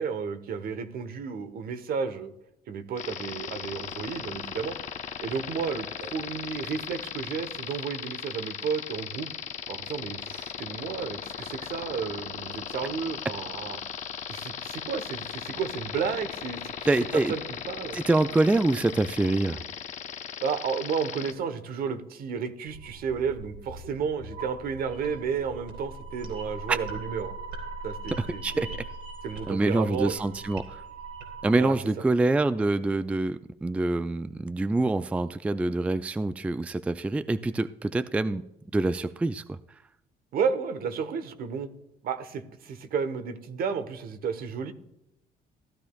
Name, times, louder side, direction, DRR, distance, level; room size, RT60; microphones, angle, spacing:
voice 1, 0.0-2.3 2.7-4.8 5.2-9.3 9.7-13.8 14.3-16.9 17.3-17.4 17.7-18.0 20.4-27.3 27.8-28.7 29.2-30.3 31.6-31.8 40.3-41.7 42.0-44.7, right 6 dB, 60° right, 11 dB, 1.1 m, -32 dB
sound 1, 3.0-21.3, left 8 dB, 45° left, 0.9 m, -37 dB
voice 2, 16.9-17.3 17.9-19.6 26.7-26.8 28.2-28.9 29.5-30.8 31.4-38.4 38.7-39.6, right 2 dB, 10° right, 12 dB, 0.3 m, -26 dB
sound 2, 22.7-31.5, right 3 dB, 80° right, 4.0 m, -41 dB
15.5 x 11.5 x 2.3 m, 0.83 s
cardioid pair, 110°, 17 cm